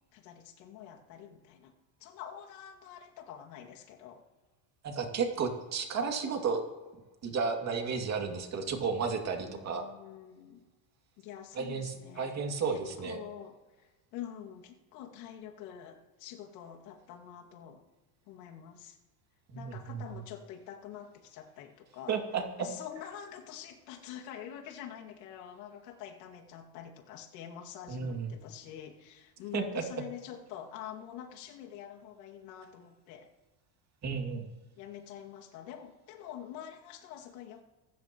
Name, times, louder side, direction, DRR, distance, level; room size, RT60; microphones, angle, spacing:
voice 1, 0.1-1.7 2.0-4.2 9.4-10.6 11.2-12.4 12.7-17.8 18.3-19.0 19.5-22.2 22.6-33.3 34.8-37.6, left 9 dB, 70° left, 1 dB, 2.4 m, -46 dB
voice 2, 4.8-6.6 7.2-9.9 11.5-13.2 19.5-20.0 22.1-22.7 27.9-28.3 29.5-29.8 34.0-34.5, right 5 dB, 30° right, 3 dB, 2.5 m, -33 dB
24.5 x 13.0 x 3.1 m, 1.2 s
supercardioid pair, 140°, 50 cm